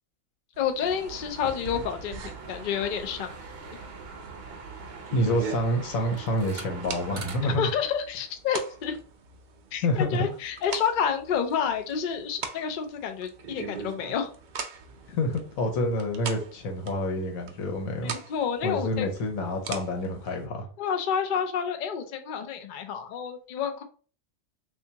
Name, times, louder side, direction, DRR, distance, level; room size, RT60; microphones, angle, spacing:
sound 1, 0.5-20.5, right 5 dB, 90° right, 0.4 m, -42 dB
voice 1, 0.6-3.3 7.6-9.0 9.7-14.3 18.0-19.1 20.8-23.8, left 7 dB, 65° left, 6 dB, 0.5 m, -29 dB
sound 2, 0.8-7.6, right 4 dB, 55° right, 0.7 m, -42 dB
voice 2, 5.1-7.7 9.8-10.3 15.1-18.1 18.6-20.6, left 1 dB, 85° left, 3 dB, 1.3 m, -28 dB
3.4 x 2.7 x 2.8 m, 0.39 s
omnidirectional pair, 1.4 m